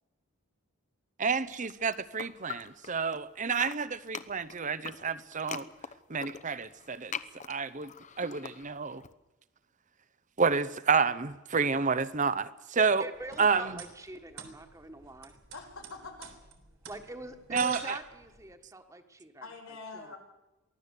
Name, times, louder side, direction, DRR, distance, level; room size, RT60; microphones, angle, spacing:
voice 1, 1.2-5.7 6.1-7.1 7.5-7.9 8.2-9.0 10.4-13.0 13.4-13.6 17.5-17.8, right 5 dB, 35° right, 15 dB, 0.8 m, -29 dB
sound 1, 1.5-3.2 3.5-9.1, left 6 dB, 35° left, 0.9 m, -43 dB
voice 2, 12.8-15.4 16.9-19.5 19.9-20.2, right 1 dB, 15° right, 7 dB, 1.6 m, -44 dB
sound 2, 13.1-18.5, right 7 dB, 70° right, 3.5 m, -47 dB
voice 3, 15.5-16.3 19.4-20.2, left 4 dB, 85° left, 2 dB, 5.2 m, -44 dB
23.5 x 16.0 x 8.3 m, 1.0 s
head